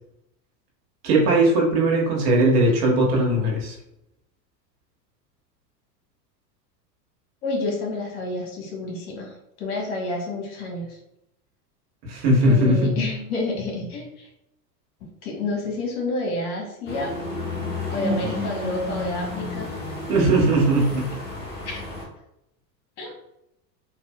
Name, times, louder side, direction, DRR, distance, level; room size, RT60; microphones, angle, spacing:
voice 1, 1.0-3.7 12.0-13.1 20.1-21.1, right 1 dB, 60° right, -2 dB, 1.2 m, -19 dB
voice 2, 7.4-9.3 9.6-10.9 12.4-14.3 15.2-17.1 17.9-19.7 21.6-21.8 23.0-23.1, left 2 dB, 60° left, -1 dB, 1.3 m, -29 dB
sound 1, 16.9-22.0, left 2 dB, 20° left, 1.0 m, -31 dB
3.5 x 2.5 x 2.3 m, 0.83 s
hypercardioid pair, 100°, 50 cm